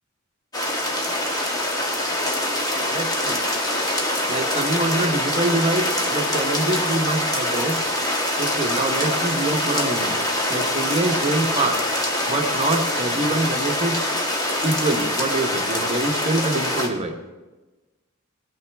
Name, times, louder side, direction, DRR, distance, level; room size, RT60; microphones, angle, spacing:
sound 1, 0.5-16.9, left 1 dB, 20° left, 1.4 m, -24 dB
voice 1, 2.9-3.4 4.3-7.8 8.4-11.8 12.3-14.1 14.6-17.1, right 2 dB, 30° right, 3 dB, 1.0 m, -25 dB
18.0 x 9.3 x 3.5 m, 1.2 s
head